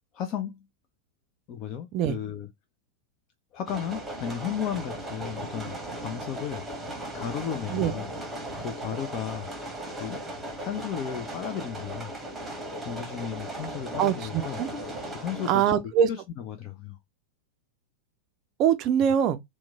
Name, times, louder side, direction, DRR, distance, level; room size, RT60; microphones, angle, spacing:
voice 1, 0.1-0.7 1.5-2.5 3.5-6.6 7.1-8.1 8.6-9.5 10.0-10.2 10.6-12.1 12.8-14.6 15.2-15.6 16.1-17.0, left 9 dB, 35° left, 0.4 m, -34 dB
sound 1, 3.7-15.5, right 1 dB, 10° right, 0.9 m, -37 dB
voice 2, 14.0-14.7 15.5-16.1 18.6-19.4, right 9 dB, 40° right, 0.4 m, -23 dB
3.0 x 2.1 x 3.3 m
figure-of-eight pair, 90°, 0 cm